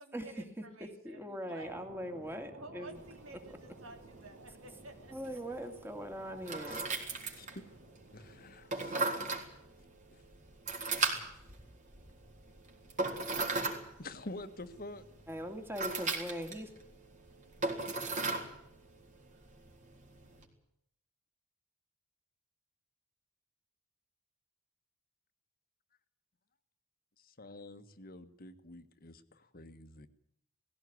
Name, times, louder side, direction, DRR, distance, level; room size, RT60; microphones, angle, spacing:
voice 1, 0.0-1.9 2.5-5.1, right 2 dB, 85° right, 5 dB, 3.5 m, -52 dB
voice 2, 1.0-3.0 5.1-6.8 15.3-16.7, equal, 10° right, 6 dB, 2.6 m, -41 dB
sound 1, 1.6-8.4, right 2 dB, 60° right, 4.0 m, -56 dB
sound 2, 2.9-20.4, right 3 dB, 40° right, 3.7 m, -39 dB
voice 3, 7.2-7.6 8.1-9.0 10.1-10.2 11.0-11.2 14.0-15.0 27.2-30.1, left 2 dB, 45° left, 10 dB, 1.4 m, -48 dB
19.0 x 16.5 x 9.6 m, 0.74 s
head